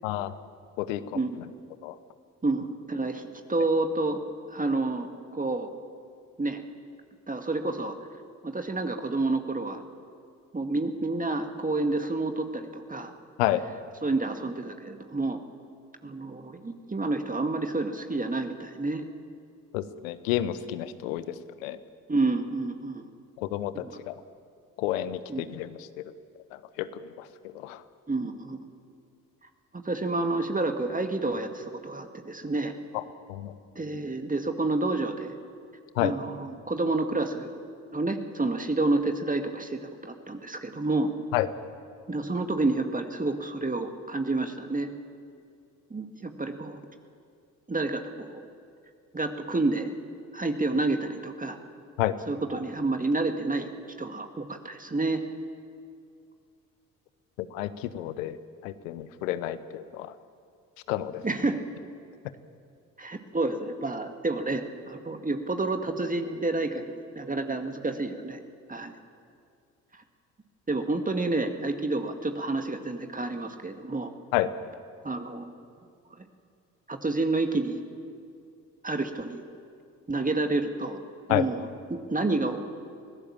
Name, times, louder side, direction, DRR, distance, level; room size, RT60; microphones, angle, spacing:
voice 1, 0.0-0.3 0.8-1.2 1.8-1.9 13.4-13.6 19.7-21.3 21.6-21.8 23.4-24.1 24.8-26.0 26.5-27.8 32.9-33.0 33.3-33.5 33.9-34.0 36.0-36.1 41.3-41.5 52.0-52.2 57.4-58.4 58.6-60.1 60.9-61.2 74.3-74.5 81.3-81.5, left 14 dB, 80° left, 15 dB, 1.0 m, -30 dB
voice 2, 1.1-1.5 2.4-4.2 4.5-5.7 6.4-6.6 7.3-8.0 8.4-9.8 10.5-13.1 14.0-15.4 16.0-19.1 22.1-23.1 23.7-23.9 25.3-25.5 28.1-28.6 29.8-32.8 33.8-35.4 36.0-37.5 37.9-41.1 42.1-44.9 45.9-46.8 47.7-48.3 49.1-49.9 50.3-51.6 52.3-53.7 54.0-55.2 61.2-61.6 63.0-68.4 68.7-68.9 70.7-74.1 75.0-75.5 76.1-76.2 76.9-77.8 78.8-79.4 80.1-81.0 81.3-82.6, right 2 dB, 20° right, 6 dB, 2.0 m, -29 dB
24.5 x 17.0 x 7.4 m, 2.3 s
hypercardioid pair, 45°, 39 cm